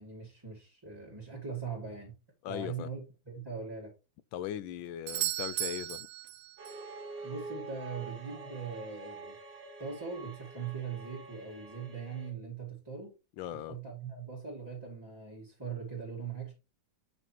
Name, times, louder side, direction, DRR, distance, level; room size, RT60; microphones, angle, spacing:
voice 1, 0.0-2.1 2.5-3.9 7.2-9.4 9.8-13.1 13.5-16.5, right 5 dB, 10° right, 2.1 m, -41 dB
voice 2, 2.4-2.9 4.3-6.1 13.4-13.8, left 11 dB, 90° left, 1.4 m, -39 dB
Doorbell, 5.1-6.9 11.0-11.1, right 14 dB, 80° right, 1.4 m, -36 dB
sound 1, 6.6-12.3, right 3 dB, 65° right, 2.3 m, -46 dB
8.6 x 6.7 x 3.0 m
omnidirectional pair, 2.1 m